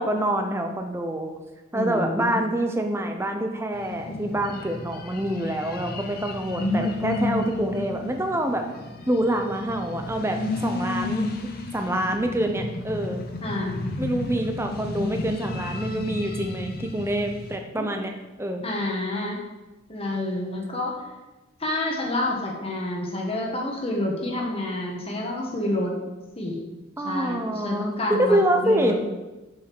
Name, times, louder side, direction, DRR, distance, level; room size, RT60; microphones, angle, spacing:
voice 1, 0.0-1.3 1.7-8.7 9.1-11.3 11.7-13.2 14.0-18.1 18.4-18.6 27.0-29.0, right 1 dB, 10° right, 4 dB, 0.7 m, -26 dB
voice 2, 1.7-2.4 13.4-13.8 17.8-17.9 18.6-19.4 19.9-21.0 21.6-25.9 26.3-26.6 27.0-29.0, left 1 dB, 30° left, -1 dB, 1.4 m, -28 dB
sound 1, 3.7-17.6, left 2 dB, 45° left, 0.9 m, -32 dB
6.8 x 5.5 x 6.2 m, 1.1 s
head